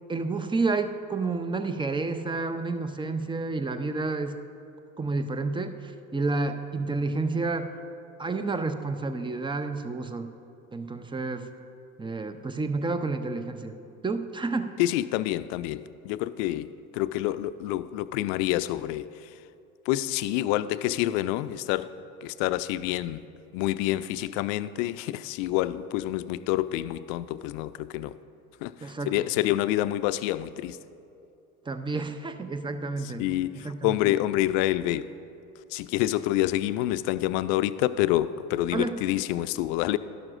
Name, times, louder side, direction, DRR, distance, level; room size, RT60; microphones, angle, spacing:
voice 1, 0.1-4.3 5.0-7.8 8.2-10.3 10.7-11.5 12.0-13.8 14.0-14.8 28.8-29.3 31.7-33.2 33.6-34.1 38.7-38.9, right 3 dB, 10° right, 9 dB, 0.5 m, -30 dB
voice 2, 14.8-16.7 16.9-19.1 19.9-21.9 22.2-23.2 23.5-28.1 28.6-28.7 29.1-30.8 33.2-35.1 35.7-40.0, left 15 dB, 60° left, 14 dB, 0.5 m, -27 dB
12.5 x 12.0 x 2.5 m, 2.7 s
hypercardioid pair, 65°, 43 cm